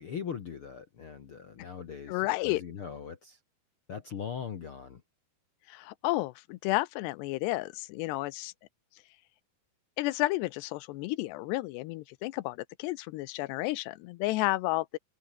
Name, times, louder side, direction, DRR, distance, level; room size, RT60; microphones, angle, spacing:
voice 1, 0.0-3.4 3.9-5.0, left 7 dB, 65° left, 1.3 m, -40 dB
voice 2, 2.1-2.6 5.7-8.5 10.0-15.0, left 19 dB, 85° left, 2.8 m, -31 dB
omnidirectional pair, 4.8 m